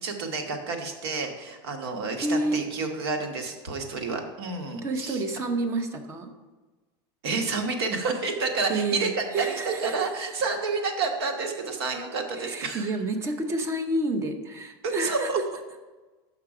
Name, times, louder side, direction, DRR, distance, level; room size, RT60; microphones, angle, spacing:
voice 1, 0.0-5.2 7.2-12.9 14.8-15.4, right 4 dB, 85° right, 4 dB, 1.3 m, -30 dB
voice 2, 2.2-2.6 4.8-6.3 8.7-10.4 12.3-15.3, right 2 dB, 20° right, 7 dB, 0.7 m, -29 dB
6.3 x 5.7 x 4.8 m, 1.2 s
supercardioid pair, 160°, 13 cm